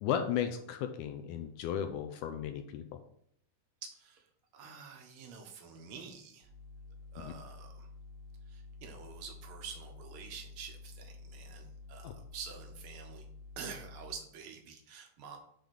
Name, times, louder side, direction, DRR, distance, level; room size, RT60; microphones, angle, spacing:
voice 1, 0.0-3.0 7.2-7.3 12.0-12.1, left 9 dB, 80° left, 7 dB, 2.0 m, -35 dB
voice 2, 3.8-4.3 4.5-6.5 7.1-7.9 8.5-13.3 13.6-15.4, right 6 dB, 60° right, 3 dB, 1.4 m, -48 dB
sound 1, 6.4-14.1, left 3 dB, 60° left, 1.7 m, -50 dB
7.6 x 3.5 x 6.4 m, 0.68 s
omnidirectional pair, 3.7 m